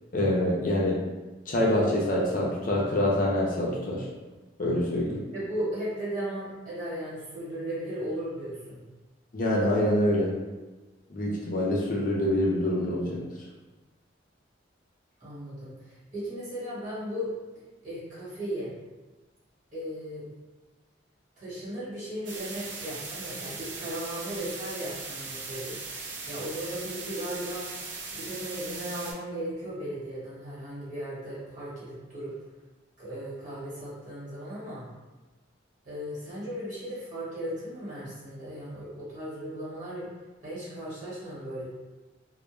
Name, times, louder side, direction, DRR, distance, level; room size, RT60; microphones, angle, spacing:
voice 1, 0.1-1.0 1.5-4.0 4.6-5.2 9.3-10.3 11.1-13.2, left 1 dB, 45° left, -4 dB, 0.5 m, -25 dB
voice 2, 5.3-8.8 15.2-17.3 17.8-18.7 19.7-20.3 21.4-25.8 26.3-27.7 28.1-32.4 33.0-34.9 35.8-40.1 40.4-41.7, right 1 dB, 40° right, -10 dB, 1.3 m, -36 dB
sound 1, 22.3-29.1, right 4 dB, 75° right, 0.5 m, -39 dB
2.1 x 2.1 x 3.0 m, 1.2 s
head